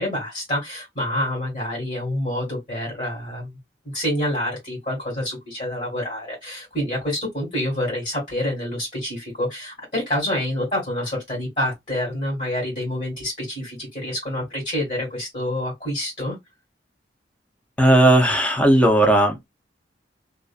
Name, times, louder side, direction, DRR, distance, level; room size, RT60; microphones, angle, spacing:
voice 1, 0.0-3.5 3.9-16.4, left 1 dB, 40° left, 1.5 m, -27 dB
voice 2, 17.8-19.5, right 1 dB, 5° left, 0.6 m, -16 dB
2.5 x 2.4 x 2.3 m
head